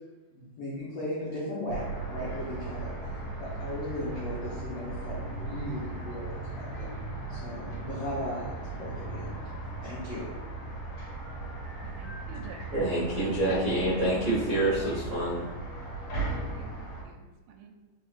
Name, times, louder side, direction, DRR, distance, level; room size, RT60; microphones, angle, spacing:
voice 1, 0.3-6.9 7.3-9.5 9.8-10.3, left 1 dB, 85° left, -7 dB, 1.3 m, -37 dB
sound 1, 1.7-17.0, right 2 dB, 60° left, 2.1 m, -37 dB
voice 2, 11.8-12.7 13.2-14.0 16.3-17.8, right 7 dB, 85° right, 2 dB, 2.1 m, -48 dB
voice 3, 12.7-15.4, right 1 dB, 65° right, -8 dB, 1.5 m, -27 dB
4.5 x 4.1 x 2.4 m, 1.2 s
omnidirectional pair, 3.9 m